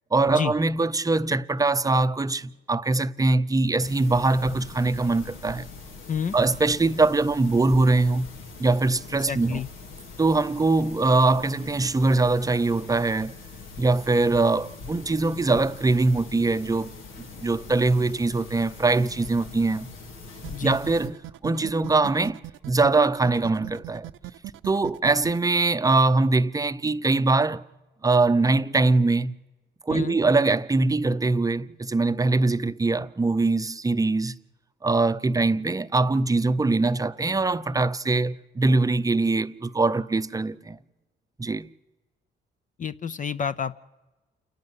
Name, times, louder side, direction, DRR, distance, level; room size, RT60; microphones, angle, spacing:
voice 1, 0.1-5.7 6.3-8.3 8.6-9.6 10.2-13.3 13.8-17.0 17.4-19.9 20.6-21.2 21.4-22.4 22.7-24.1 24.6-27.6 28.0-29.3 29.9-34.4 34.8-40.8 41.4-41.7, right 3 dB, 15° right, 0.7 m, -22 dB
sound 1, 3.8-21.1, left 4 dB, 85° left, 2.8 m, -42 dB
voice 2, 9.3-9.7 20.5-20.8 29.9-30.2 42.8-43.7, left 7 dB, 40° left, 0.7 m, -29 dB
sound 2, 20.4-25.4, right 14 dB, 80° right, 0.7 m, -39 dB
28.5 x 11.5 x 9.6 m
cardioid pair, 90°, 20 cm